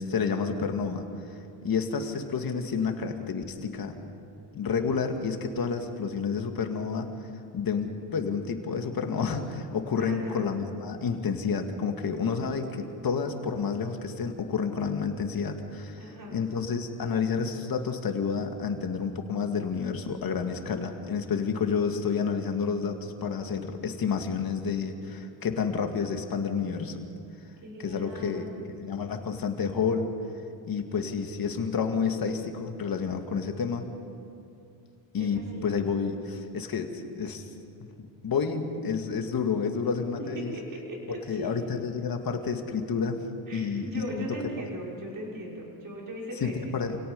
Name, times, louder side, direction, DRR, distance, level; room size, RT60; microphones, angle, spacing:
voice 1, 0.0-4.0 4.5-7.1 7.5-27.1 27.8-30.1 30.6-33.9 35.1-37.5 37.8-37.9 38.2-40.5 41.3-43.2 43.5-44.3 46.4-47.0, left 5 dB, 50° left, 5 dB, 2.2 m, -30 dB
voice 2, 10.0-10.5 16.0-16.4 27.6-28.6 35.1-35.9 40.3-41.5 43.5-46.7, right 1 dB, 45° right, -3 dB, 6.0 m, -39 dB
28.0 x 17.5 x 5.4 m, 2.5 s
cardioid pair, 90°, 46 cm